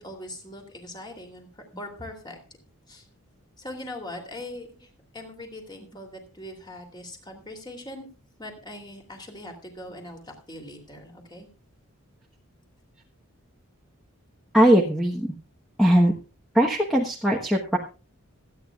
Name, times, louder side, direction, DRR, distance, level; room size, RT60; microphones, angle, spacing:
voice 1, 0.0-2.4 2.9-3.1 3.6-8.1 8.4-11.5, left 1 dB, 20° left, 3 dB, 2.9 m, -41 dB
voice 2, 14.5-15.3 15.8-16.1 16.5-17.8, right 1 dB, ahead, -3 dB, 1.1 m, -20 dB
26.0 x 9.6 x 2.4 m, 0.32 s
head